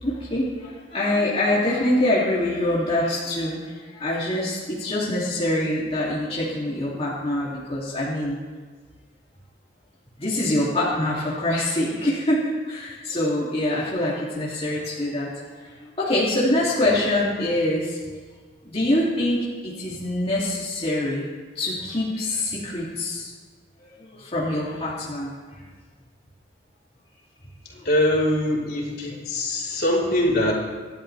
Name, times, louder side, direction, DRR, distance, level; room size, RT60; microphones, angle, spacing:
voice 1, 0.0-8.4 10.2-15.3 15.8-18.0 18.6-21.3 21.5-23.3 24.0-25.3, left 1 dB, 35° left, -7 dB, 2.8 m, -25 dB
voice 2, 27.8-30.5, left 1 dB, 55° left, -4 dB, 4.1 m, -22 dB
27.0 x 12.5 x 3.4 m, 1.5 s
head